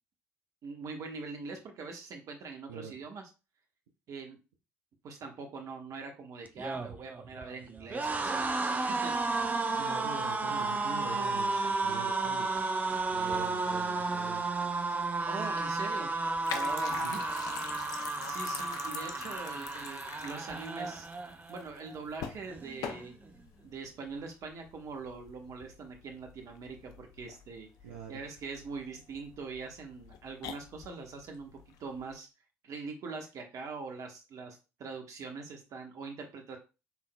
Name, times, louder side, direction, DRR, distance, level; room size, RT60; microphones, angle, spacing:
voice 1, 0.6-3.2 4.1-4.4 5.0-8.5 8.9-9.1 15.3-16.1 16.5-17.2 18.2-21.1 21.5-23.1 23.6-27.7 28.1-32.3 32.6-36.6, right 4 dB, 50° right, 4 dB, 1.2 m, -43 dB
sound 1, 6.5-21.7 22.0-22.2 22.5-23.3, right 3 dB, 25° right, 0.8 m, -33 dB
voice 2, 9.6-12.5 13.1-14.5 17.0-17.1 27.8-28.3, right 6 dB, 75° right, 1 dB, 0.7 m, -44 dB
sound 2, 12.6-32.1, left 7 dB, 60° left, 0.6 m, -45 dB
5.8 x 3.7 x 2.3 m, 0.30 s
figure-of-eight pair, 50°, 7 cm